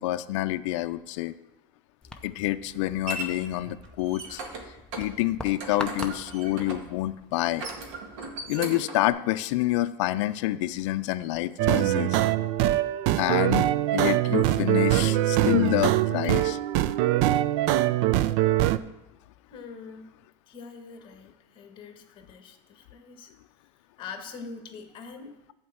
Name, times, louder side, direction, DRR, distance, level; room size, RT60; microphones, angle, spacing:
voice 1, 0.0-1.4 2.2-4.4 5.0-7.6 8.5-12.2 13.2-16.6, left 16 dB, 85° left, 11 dB, 0.4 m, -27 dB
sound 1, 2.0-8.6, left 2 dB, 5° left, 0.6 m, -44 dB
sound 2, 2.2-3.3 3.8-4.6 4.9-5.1 5.4-6.9 7.5-9.1, right 2 dB, 85° right, 1.9 m, -37 dB
sound 3, 11.6-18.8, right 14 dB, 65° right, 0.4 m, -23 dB
voice 2, 19.5-20.1 20.5-23.3 24.0-25.4, left 5 dB, 35° left, 4 dB, 1.6 m, -43 dB
11.5 x 4.5 x 7.7 m, 0.95 s
cardioid pair, 150°, 15 cm